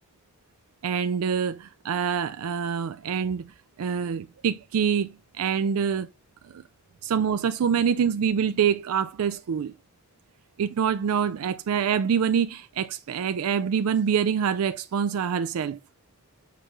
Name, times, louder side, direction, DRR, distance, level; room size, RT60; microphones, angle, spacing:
voice 1, 0.8-3.5 3.8-6.1 6.5-6.6 7.0-9.7 10.6-15.8, right 7 dB, 80° right, 0.4 m, -25 dB
6.5 x 5.0 x 3.1 m
head